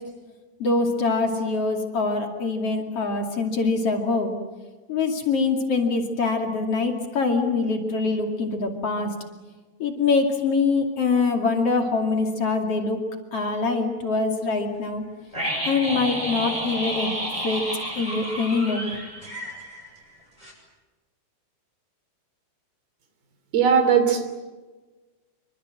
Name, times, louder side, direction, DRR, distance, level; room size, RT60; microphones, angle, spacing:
voice 1, 0.6-4.3 4.9-9.1 9.8-13.0 13.3-15.0 15.6-17.1 17.4-17.6 17.9-18.9, left 4 dB, 45° left, 3 dB, 3.2 m, -24 dB
sound 1, 15.3-20.2 20.4-20.5, right 1 dB, 10° right, 8.1 m, -31 dB
voice 2, 23.5-24.2, right 7 dB, 85° right, 8 dB, 5.0 m, -18 dB
26.5 x 25.0 x 7.7 m, 1.3 s
omnidirectional pair, 4.2 m